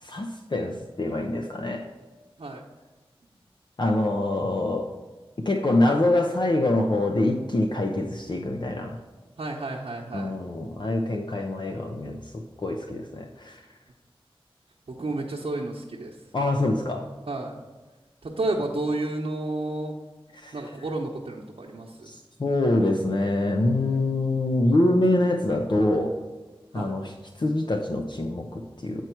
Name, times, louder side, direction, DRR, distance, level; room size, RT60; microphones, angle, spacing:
voice 1, 0.0-1.9 3.8-4.9 5.4-9.0 10.1-13.6 16.3-17.1 20.3-20.7 22.0-26.1 26.7-29.0, left 1 dB, 50° left, 2 dB, 0.7 m, -25 dB
voice 2, 9.4-10.4 15.0-16.1 17.3-17.6 18.2-19.9 20.5-22.1 26.7-27.0, right 2 dB, 75° right, -3 dB, 0.9 m, -31 dB
9.3 x 4.6 x 4.5 m, 1.3 s
wide cardioid pair, 55°, 10 cm